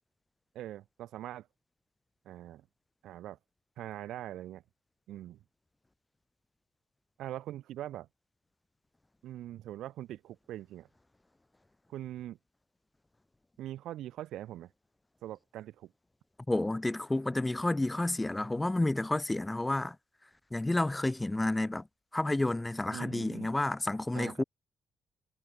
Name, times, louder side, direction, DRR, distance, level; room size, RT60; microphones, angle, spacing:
voice 1, 0.5-1.5 2.3-2.7 3.0-3.4 3.8-4.6 5.1-5.4 7.2-8.1 9.2-10.9 11.9-12.4 13.6-14.7 15.2-15.9 22.9-23.5 24.1-24.4, right 13 dB, 85° right, 4.3 m, -42 dB
voice 2, 16.5-19.9 20.5-21.9 22.1-24.4, left 2 dB, 10° left, 6.8 m, -30 dB
cardioid pair, 170°, 0 cm